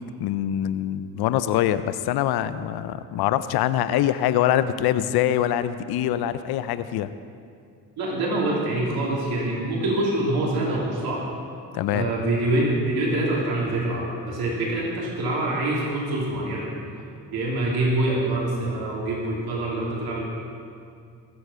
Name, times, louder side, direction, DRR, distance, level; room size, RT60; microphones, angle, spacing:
voice 1, 0.0-7.1 11.7-12.1, left 11 dB, 80° left, 13 dB, 0.7 m, -24 dB
voice 2, 8.0-11.3 11.9-16.7 17.3-20.2, right 1 dB, 75° right, -4 dB, 3.1 m, -25 dB
21.5 x 8.0 x 5.6 m, 2.3 s
supercardioid pair, 60°, 37 cm